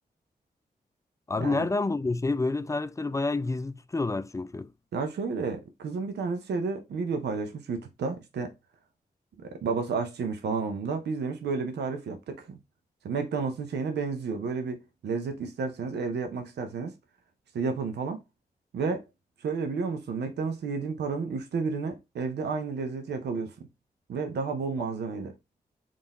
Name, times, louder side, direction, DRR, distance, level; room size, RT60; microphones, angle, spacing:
voice 1, 1.3-4.7, left 3 dB, 20° left, 0.4 m, -28 dB
voice 2, 4.9-8.5 9.4-12.6 13.0-16.9 17.5-18.2 18.7-19.0 19.4-23.5 24.1-25.3, right 4 dB, 85° right, 0.6 m, -31 dB
3.7 x 2.4 x 4.0 m
cardioid pair, 50°, 17 cm